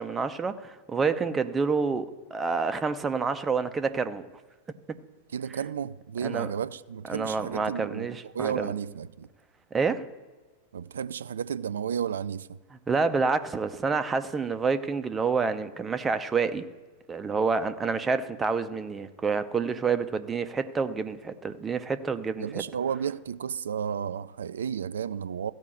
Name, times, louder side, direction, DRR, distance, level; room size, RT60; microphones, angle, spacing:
voice 1, 0.0-4.3 6.2-6.5 7.1-8.7 9.7-10.1 12.9-16.7 17.1-22.6, right 4 dB, 15° right, 0.6 m, -28 dB
voice 2, 5.3-9.3 10.7-12.6 22.4-25.5, right 8 dB, 65° right, 0.4 m, -32 dB
14.5 x 5.3 x 8.0 m
figure-of-eight pair, 90°, 0 cm